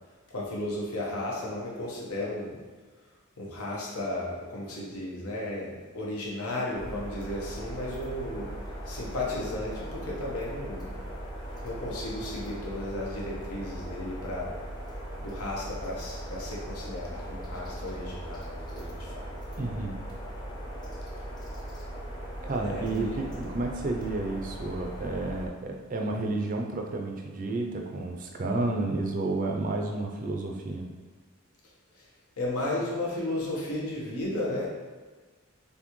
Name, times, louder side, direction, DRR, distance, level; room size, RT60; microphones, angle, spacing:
voice 1, 0.3-2.6 3.4-8.5 8.9-10.9 11.6-14.6 15.2-19.3 22.6-23.2 32.0-32.1 32.4-34.7, left 1 dB, 85° left, -4 dB, 1.1 m, -34 dB
sound 1, 6.7-25.5, right 1 dB, 20° left, 0.5 m, -39 dB
voice 2, 19.6-20.0 22.4-30.9, right 2 dB, 35° right, 2 dB, 0.4 m, -31 dB
4.2 x 3.4 x 3.0 m, 1.4 s
head